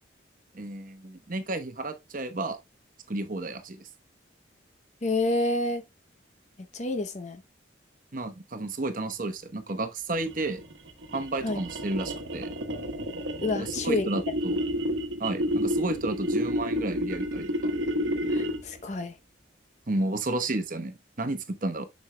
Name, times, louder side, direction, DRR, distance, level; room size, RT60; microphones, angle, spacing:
voice 1, 0.5-2.6 3.1-3.9 8.1-10.6 11.1-12.5 13.6-14.6 15.2-17.7 19.9-21.9, right 2 dB, 45° right, 0.9 m, -32 dB
voice 2, 5.0-5.8 6.7-7.4 11.4-11.6 13.4-14.0 18.3-19.1, left 2 dB, 40° left, 0.7 m, -28 dB
sound 1, 10.1-18.8, equal, 80° right, 1.1 m, -30 dB
7.1 x 6.3 x 2.2 m
head